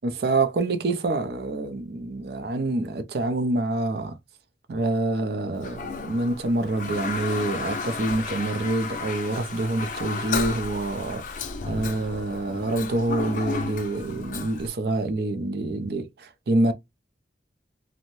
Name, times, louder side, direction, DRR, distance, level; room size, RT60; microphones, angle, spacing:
voice 1, 0.0-4.1 4.7-16.7, right 2 dB, 60° right, 0.4 m, -26 dB
Toilet flush, 5.6-14.7, left 4 dB, 45° left, 0.4 m, -33 dB
2.6 x 2.0 x 3.0 m
head